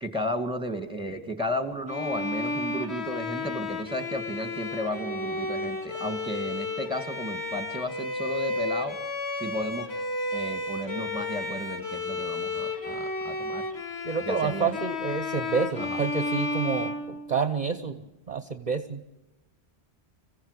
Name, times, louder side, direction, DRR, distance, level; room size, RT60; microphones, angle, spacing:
voice 1, 0.0-9.0 9.3-9.9 10.3-13.7 14.2-14.8 15.8-16.0, equal, 5° right, 7 dB, 2.0 m, -33 dB
Bowed string instrument, 1.9-17.8, left 2 dB, 70° left, 2.2 m, -32 dB
voice 2, 14.0-19.0, right 5 dB, 40° right, 9 dB, 1.0 m, -29 dB
26.5 x 15.5 x 8.1 m, 1.0 s
omnidirectional pair, 1.1 m